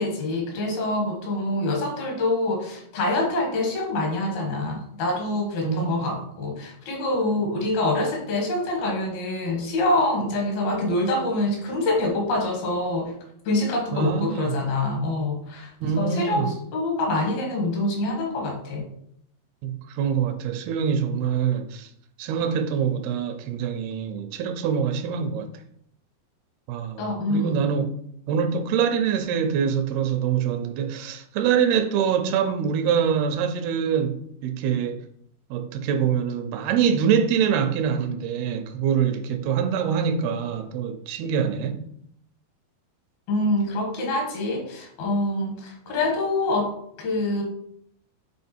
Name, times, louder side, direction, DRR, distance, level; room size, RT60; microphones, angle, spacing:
voice 1, 0.0-13.2 13.5-18.9 27.0-27.6 43.3-46.7 47.0-47.4, left 2 dB, 75° left, 3.4 m, -25 dB
voice 2, 5.6-6.0 13.9-14.5 15.8-16.5 19.6-21.9 22.2-25.5 26.7-28.0 28.3-35.0 35.5-41.9, right 7 dB, 85° right, 2.7 m, -24 dB
8.5 x 3.6 x 4.4 m
omnidirectional pair, 4.4 m